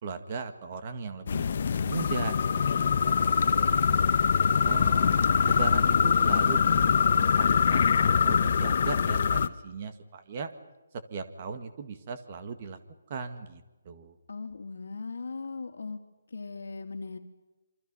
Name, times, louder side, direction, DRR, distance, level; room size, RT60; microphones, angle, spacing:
voice 1, 0.0-2.6 3.0-4.0 4.6-10.5 11.1-12.8 13.1-14.1, right 5 dB, 25° right, 8 dB, 1.8 m, -38 dB
sound 1, 1.3-9.5, left 6 dB, 40° left, 0.9 m, -23 dB
voice 2, 14.3-16.0 16.3-17.2, left 4 dB, 75° left, 5 dB, 2.8 m, -38 dB
28.5 x 26.0 x 5.6 m, 1.1 s
hypercardioid pair, 175°, 0 cm